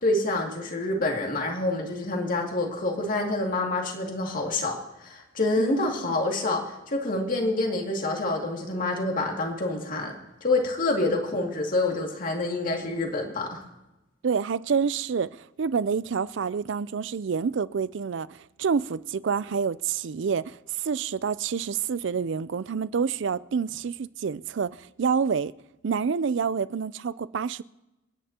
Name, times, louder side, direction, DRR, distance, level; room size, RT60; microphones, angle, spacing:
voice 1, 0.0-4.8 5.0-10.1 10.4-13.6, left 2 dB, 45° left, 2.4 m, -27 dB
voice 2, 14.2-25.5 25.8-27.6, right 6 dB, 65° right, 0.4 m, -28 dB
29.5 x 10.0 x 2.9 m
head